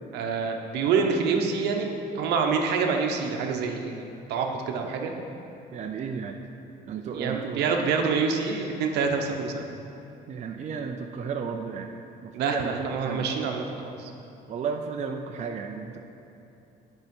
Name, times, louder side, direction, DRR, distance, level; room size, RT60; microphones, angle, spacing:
voice 1, 0.1-5.1 6.9-9.7 12.3-14.1, right 5 dB, 80° right, 3 dB, 0.9 m, -27 dB
voice 2, 5.7-6.4 6.8-7.8 10.3-11.9 12.2-13.3 14.5-16.0, right 6 dB, 45° right, 3 dB, 0.5 m, -33 dB
8.3 x 5.5 x 5.3 m, 2.7 s
cardioid pair, 110°, 17 cm